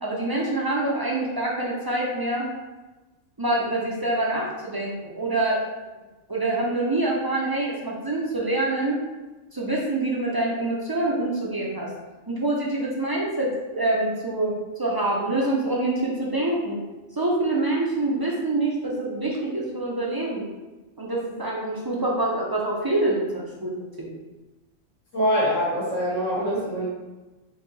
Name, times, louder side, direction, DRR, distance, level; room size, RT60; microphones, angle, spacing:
voice 1, 0.0-2.5 3.4-5.5 6.3-9.0 9.5-11.9 12.3-16.8 17.1-20.5 21.0-23.7 24.0-24.1, right 2 dB, 30° right, -4 dB, 0.4 m, -26 dB
voice 2, 25.1-26.9, equal, 75° left, -6 dB, 1.9 m, -24 dB
4.2 x 2.7 x 4.0 m, 1.2 s
omnidirectional pair, 1.3 m